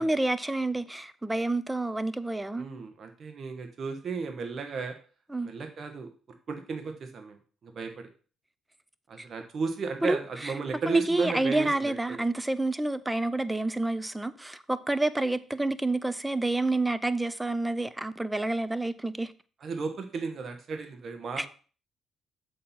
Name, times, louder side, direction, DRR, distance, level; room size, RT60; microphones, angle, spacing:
voice 1, 0.0-2.7 5.3-5.5 9.2-9.3 10.0-10.5 10.9-19.3 21.4-21.5, right 2 dB, 10° right, 0.6 m, -29 dB
voice 2, 2.6-4.9 5.4-6.1 6.5-7.4 7.6-8.1 9.1-12.2 19.6-21.5, right 4 dB, 50° right, 1.2 m, -34 dB
7.6 x 4.3 x 5.6 m
cardioid pair, 80°, 0 cm